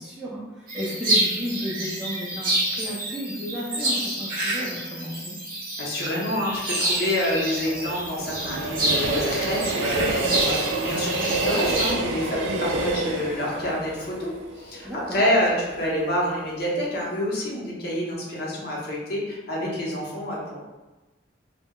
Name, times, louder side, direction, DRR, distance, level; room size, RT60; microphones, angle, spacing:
voice 1, 0.0-5.4 10.4-10.7 14.8-15.2, equal, 5° right, -7 dB, 0.4 m, -33 dB
sound 1, 0.7-11.9, right 1 dB, 45° right, 0.7 m, -28 dB
voice 2, 5.8-10.4 10.8-20.6, left 1 dB, 55° left, -4 dB, 0.7 m, -27 dB
Train, 6.4-15.5 15.9-16.0, right 2 dB, 90° right, 0.4 m, -29 dB
2.2 x 2.0 x 3.5 m, 1.1 s
head